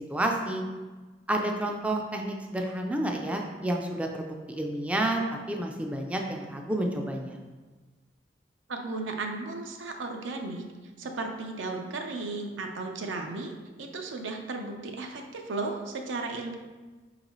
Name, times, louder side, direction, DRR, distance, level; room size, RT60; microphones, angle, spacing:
voice 1, 0.1-0.6 1.3-5.2 5.5-7.4, right 1 dB, 5° right, 1 dB, 0.3 m, -30 dB
voice 2, 8.7-10.6 11.0-13.5 13.8-16.6, right 3 dB, 85° right, 3 dB, 0.6 m, -35 dB
4.5 x 3.9 x 3.0 m, 1.3 s
head